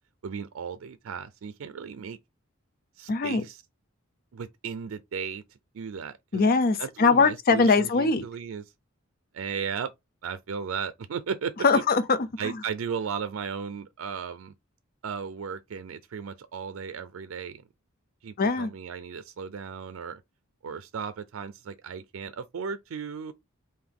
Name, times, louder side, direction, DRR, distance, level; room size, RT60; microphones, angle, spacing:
voice 1, 0.2-2.2 3.0-3.6 4.3-5.4 5.7-6.5 6.8-8.7 9.3-9.9 10.2-11.5 12.4-14.5 15.0-17.6 18.2-20.2 20.6-23.3, right 6 dB, 80° right, 0.4 m, -35 dB
voice 2, 3.1-3.4 6.3-8.2 11.6-12.2 12.4-12.5 18.4-18.7, left 4 dB, 45° left, 0.5 m, -21 dB
3.5 x 2.6 x 3.7 m
head